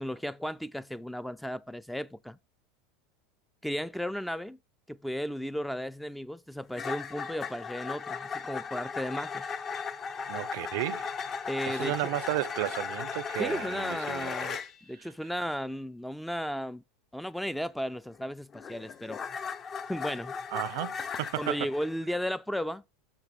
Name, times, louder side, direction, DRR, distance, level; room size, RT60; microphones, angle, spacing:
voice 1, 0.0-2.4 3.6-4.6 4.9-9.5 11.5-11.9 13.4-14.5 14.9-16.8 17.1-19.2 19.9-20.3 21.4-22.8, equal, ahead, 0.3 m, -34 dB
sound 1, 6.7-14.7 18.1-21.9, left 6 dB, 35° left, 0.7 m, -37 dB
voice 2, 10.3-11.1 11.7-14.6 15.0-15.1 20.5-21.7, right 18 dB, 70° right, 0.4 m, -33 dB
6.1 x 5.5 x 5.3 m
supercardioid pair, 110°, 0 cm